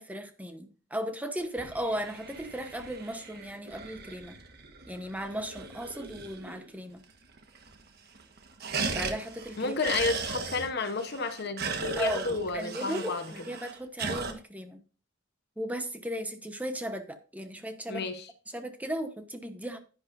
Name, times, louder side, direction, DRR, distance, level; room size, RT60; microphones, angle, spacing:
voice 1, 0.0-4.4 4.9-7.0 8.9-9.7 12.0-14.8 15.6-18.1 18.5-19.8, equal, 10° right, 1.0 m, -36 dB
sound 1, 1.4-6.7 7.0-7.1 7.4-7.9 8.2-14.3, right 4 dB, 55° right, 1.4 m, -38 dB
voice 2, 9.6-13.3 17.9-18.3, left 4 dB, 55° left, 1.0 m, -31 dB
10.5 x 10.0 x 2.6 m
head